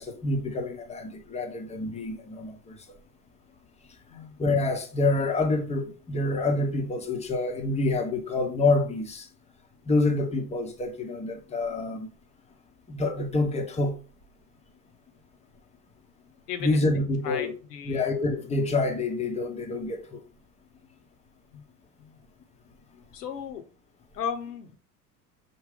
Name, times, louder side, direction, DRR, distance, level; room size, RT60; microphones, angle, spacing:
voice 1, 0.0-2.8 4.4-9.2 9.9-12.1 12.9-14.0 16.6-17.5 17.8-20.2, left 2 dB, 15° left, 0.7 m, -27 dB
voice 2, 16.5-16.8 17.2-18.1 21.5-21.6 22.0-22.2 23.1-23.6 24.1-24.8, left 8 dB, 70° left, 0.9 m, -35 dB
5.3 x 2.2 x 3.5 m
figure-of-eight pair, 75°, 50 cm